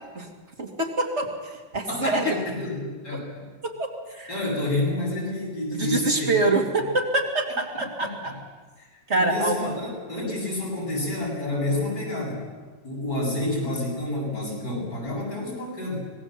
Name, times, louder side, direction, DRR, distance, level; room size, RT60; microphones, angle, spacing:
voice 1, 0.6-2.4 3.6-4.3 5.7-8.3 9.1-9.6, right 2 dB, 40° right, 1 dB, 3.0 m, -25 dB
voice 2, 1.9-3.5 4.3-6.3 7.5-8.4 8.8-12.4 12.8-16.0, left 1 dB, 65° left, -3 dB, 8.2 m, -29 dB
25.5 x 19.5 x 7.7 m, 1.3 s
omnidirectional pair, 1.9 m